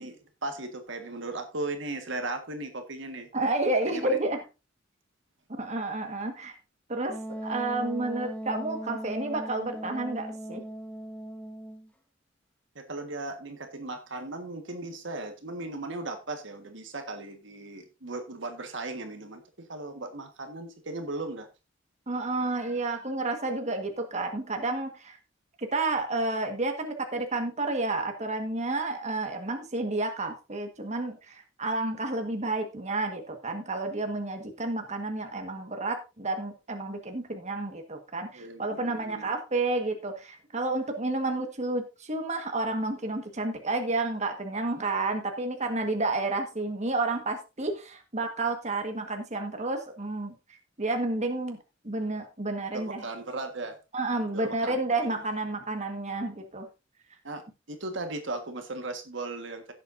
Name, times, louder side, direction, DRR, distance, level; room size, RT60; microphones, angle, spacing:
voice 1, 0.0-3.3 3.9-4.2 12.7-21.5 38.3-39.3 52.7-53.8 54.3-54.8 55.0-55.2 57.2-57.4 57.7-59.7, right 2 dB, 65° right, 6 dB, 1.6 m, -37 dB
voice 2, 3.3-4.4 5.6-6.5 6.9-7.2 7.4-10.6 22.1-25.2 25.6-50.3 50.8-51.6 51.8-53.0 53.9-56.7, right 2 dB, 35° right, 4 dB, 1.6 m, -30 dB
Wind instrument woodwind instrument, 7.1-11.9, right 1 dB, 5° left, 1.2 m, -38 dB
16.5 x 7.7 x 2.7 m, 0.28 s
head